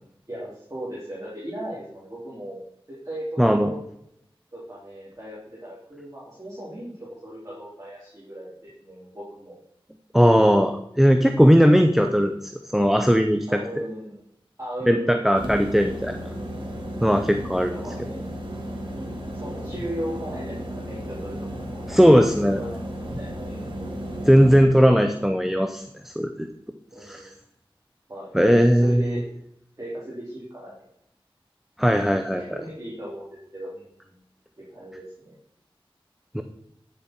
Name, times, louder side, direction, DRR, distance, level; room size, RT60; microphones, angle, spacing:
voice 1, 0.3-2.6 2.9-3.8 4.5-9.5 11.6-11.8 13.5-14.2 14.6-15.6 17.7-18.2 19.3-22.8 23.2-23.9 26.9-27.3 28.1-28.3 28.6-29.4 29.8-30.8 32.3-34.2 34.6-35.4, right 1 dB, 35° right, -7 dB, 3.1 m, -37 dB
voice 2, 3.4-3.7 10.1-13.6 14.9-16.2 17.0-17.7 21.9-22.6 24.3-26.5 27.0-27.2 28.3-29.0 31.8-32.4 36.3-36.4, equal, 5° right, 7 dB, 0.6 m, -18 dB
sound 1, 15.4-24.6, equal, 60° right, 2.2 m, -34 dB
9.2 x 7.0 x 4.4 m, 0.76 s
wide cardioid pair, 60°, 10 cm